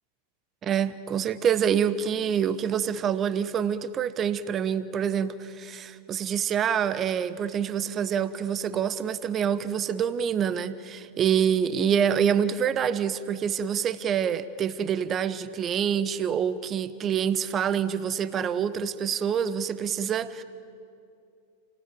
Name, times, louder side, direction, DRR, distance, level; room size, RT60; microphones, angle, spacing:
voice 1, 0.6-20.4, right 8 dB, 25° right, 14 dB, 1.0 m, -26 dB
29.0 x 18.5 x 9.5 m, 2.5 s
figure-of-eight pair, 90°, 0 cm